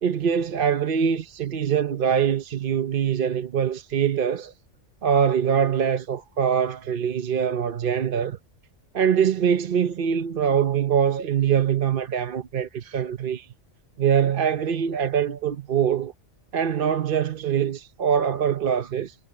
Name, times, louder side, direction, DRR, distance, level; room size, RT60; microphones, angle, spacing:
voice 1, 0.0-4.5 5.0-8.4 8.9-13.5 14.0-16.1 16.5-19.2, right 8 dB, 50° right, 0.9 m, -23 dB
omnidirectional pair, 1.2 m